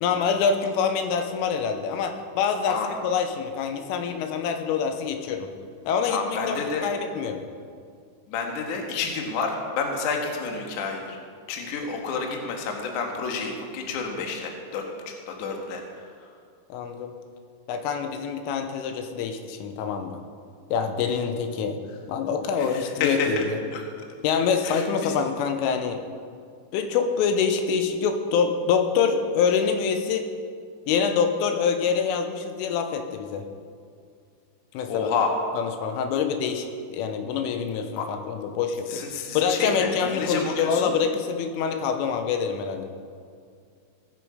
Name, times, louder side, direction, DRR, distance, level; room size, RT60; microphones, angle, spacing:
voice 1, 0.0-5.5 5.9-7.4 16.7-17.1 17.7-20.2 20.7-21.8 22.1-23.6 24.2-26.0 26.7-30.3 30.9-33.4 34.8-35.1 35.6-36.7 36.9-39.0 39.4-42.9, left 6 dB, 85° left, 6 dB, 3.4 m, -25 dB
voice 2, 2.7-3.0 6.1-6.9 8.3-11.2 11.5-16.1 22.6-23.4 23.7-23.8 24.6-25.1 34.9-35.3 38.0-38.1 38.9-40.9, left 4 dB, 65° left, 2 dB, 2.0 m, -29 dB
18.0 x 7.9 x 5.0 m, 2.2 s
omnidirectional pair, 5.7 m